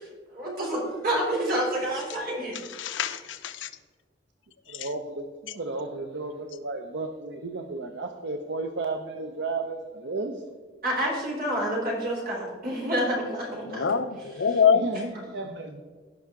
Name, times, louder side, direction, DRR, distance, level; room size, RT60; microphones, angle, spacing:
voice 1, 0.3-3.0 10.8-13.8, right 1 dB, 50° right, -3 dB, 3.3 m, -28 dB
voice 2, 2.5-3.7 4.7-4.9 13.7-14.9, left 6 dB, 80° left, 11 dB, 0.6 m, -25 dB
voice 3, 4.7-10.4 14.7-15.8, right 3 dB, 70° right, 5 dB, 0.7 m, -33 dB
16.5 x 5.6 x 3.7 m, 1.5 s
head